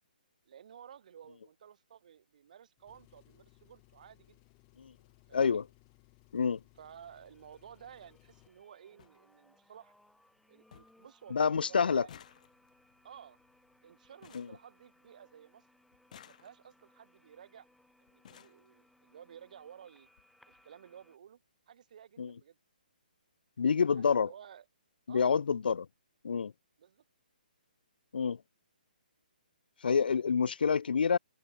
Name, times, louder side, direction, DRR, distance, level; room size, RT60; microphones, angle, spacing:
voice 1, 0.5-4.4 5.3-5.6 6.8-9.9 10.5-11.4 11.7-12.2 13.0-13.4 13.8-15.7 16.3-17.7 18.1-20.1 20.5-21.4 21.7-22.6 23.9-24.7 25.1-25.3 26.8-27.0, right 9 dB, 50° right, 7.5 m, -54 dB
Engine, 2.8-8.6, left 40 dB or more, 25° left, 6.3 m, -64 dB
voice 2, 5.3-5.6 6.3-6.6 11.3-12.1 14.3-14.5 22.2-22.3 23.6-24.3 25.1-25.9 26.2-26.5 28.1-28.4 29.8-31.2, left 6 dB, 80° left, 0.4 m, -28 dB
sound 1, 6.9-21.2, left 1 dB, ahead, 2.6 m, -67 dB
sound 2, 8.6-8.7 9.0-9.2 9.6-10.1 10.4-10.5 10.7-11.1 11.4-15.3 15.9-16.9 17.7-17.8 18.1-18.7 19.6-19.7 20.0-20.2 20.5-20.6, left 9 dB, 50° left, 1.3 m, -58 dB
hypercardioid pair, 155°, 5 cm